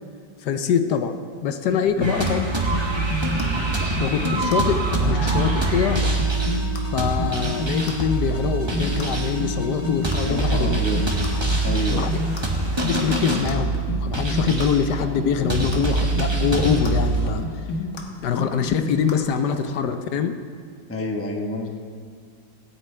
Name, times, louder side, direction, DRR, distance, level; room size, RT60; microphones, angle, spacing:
voice 1, 0.4-2.5 4.0-6.0 6.9-10.8 11.9-12.1 12.8-17.6 18.2-20.4, left 7 dB, 70° left, 8 dB, 1.2 m, -24 dB
sound 1, 1.7-19.6, left 2 dB, 55° left, 1.6 m, -30 dB
sound 2, 2.0-17.3, right 2 dB, 15° right, 1.2 m, -24 dB
voice 2, 10.2-11.0 11.6-12.1 20.9-21.7, left 1 dB, 10° left, 2 dB, 0.7 m, -28 dB
24.0 x 8.9 x 3.3 m, 2.1 s
omnidirectional pair, 1.9 m